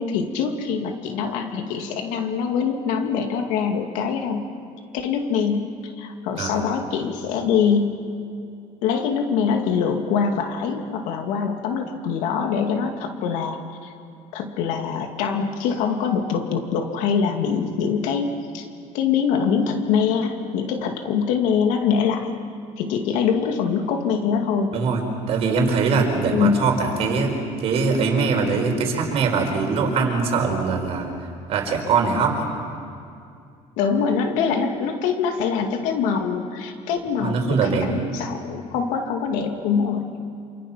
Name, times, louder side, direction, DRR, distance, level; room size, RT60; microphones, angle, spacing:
voice 1, 0.0-4.4 4.9-5.7 6.0-8.0 8.8-13.9 14.3-18.7 18.9-22.3 22.8-24.8 26.3-26.6 33.8-40.2, left 6 dB, 90° left, 5 dB, 2.5 m, -24 dB
voice 2, 25.3-27.3 27.6-31.1 31.5-32.4 37.2-37.9, right 4 dB, 55° right, 2 dB, 4.9 m, -22 dB
28.0 x 27.5 x 5.9 m, 2.5 s
cardioid pair, 135°, 12 cm